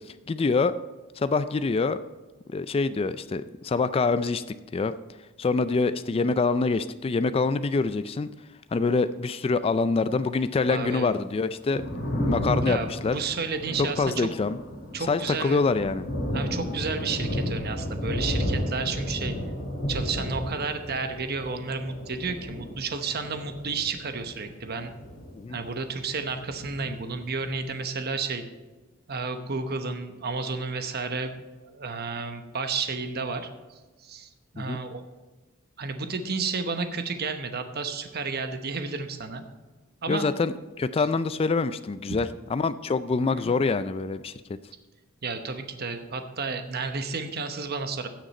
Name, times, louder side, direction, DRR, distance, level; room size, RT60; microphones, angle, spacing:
voice 1, 0.3-0.7 1.2-2.0 2.5-4.4 4.7-4.9 5.4-8.3 8.7-11.8 12.2-13.2 13.8-14.6 15.1-16.0 25.3-25.6 34.6-34.8 40.1-44.3, left 4 dB, 30° left, 13 dB, 0.3 m, -25 dB
voice 2, 10.7-11.1 12.5-14.3 14.9-15.6 16.3-19.3 19.9-24.9 25.5-28.4 29.1-35.0 35.8-39.4 40.0-40.2 43.4-43.5 45.2-48.1, right 4 dB, 50° right, 8 dB, 1.0 m, -32 dB
Thunder, 11.5-26.0 26.2-27.5, equal, 45° left, 3.1 m, -33 dB
16.5 x 6.4 x 4.3 m, 1.2 s
head